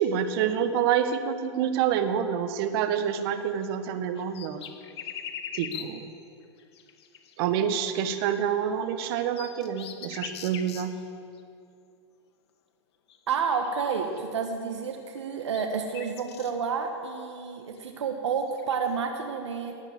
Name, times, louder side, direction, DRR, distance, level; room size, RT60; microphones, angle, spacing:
voice 1, 0.0-4.6 5.5-6.0 7.4-10.9, right 8 dB, 55° right, 8 dB, 1.4 m, -27 dB
sound 1, 3.2-3.4 3.6-3.7 4.2-6.1 6.6-7.3 8.4-8.5 9.0-11.0 11.3-11.4 13.1-13.2 13.5-14.2 15.2-16.5 17.8-18.9, left 8 dB, 65° left, 1.3 m, -41 dB
voice 2, 13.3-19.7, right 6 dB, 80° right, 5 dB, 1.3 m, -30 dB
18.5 x 8.1 x 7.9 m, 2.4 s
hypercardioid pair, 100°, 15 cm